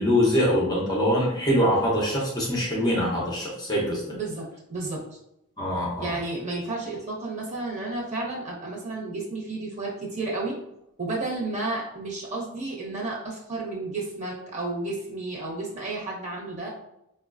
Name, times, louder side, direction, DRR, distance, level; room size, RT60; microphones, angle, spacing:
voice 1, 0.0-4.2 5.6-6.1, equal, 20° left, -4 dB, 0.6 m, -24 dB
voice 2, 4.1-5.2 6.0-10.5 11.0-16.7, right 2 dB, 30° right, -4 dB, 1.0 m, -32 dB
4.7 x 2.3 x 2.4 m, 0.82 s
head